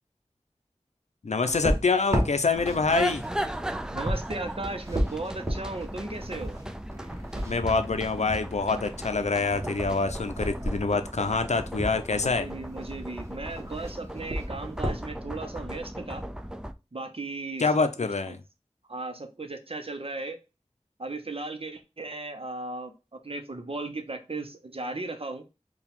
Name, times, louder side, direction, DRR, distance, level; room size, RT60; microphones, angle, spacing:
voice 1, 1.2-3.2 7.5-12.5 17.6-18.4, left 4 dB, 85° left, 0.5 m, -26 dB
sound 1, 1.4-12.0 12.8-13.3 13.5-15.0, equal, 25° right, 1.1 m, -33 dB
sound 2, 2.5-16.7, right 1 dB, 5° right, 0.3 m, -37 dB
voice 2, 3.9-6.6 12.2-16.2 16.9-17.6 18.3-18.4 18.9-20.4 21.0-25.4, right 2 dB, 55° right, 0.7 m, -36 dB
4.5 x 2.3 x 3.5 m
wide cardioid pair, 45°, 11 cm